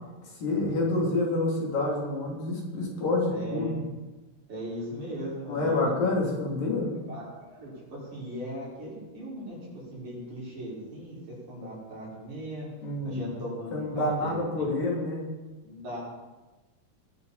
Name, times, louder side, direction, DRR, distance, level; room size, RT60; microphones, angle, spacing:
voice 1, 0.3-3.8 5.5-6.9 12.8-13.2 13.7-15.2, left 2 dB, 75° left, -2 dB, 5.0 m, -28 dB
voice 2, 3.3-3.7 4.5-5.9 7.0-12.7 13.0-14.6 15.6-16.0, equal, 55° right, -6 dB, 6.7 m, -38 dB
20.5 x 12.0 x 4.3 m, 1.2 s
omnidirectional pair, 4.0 m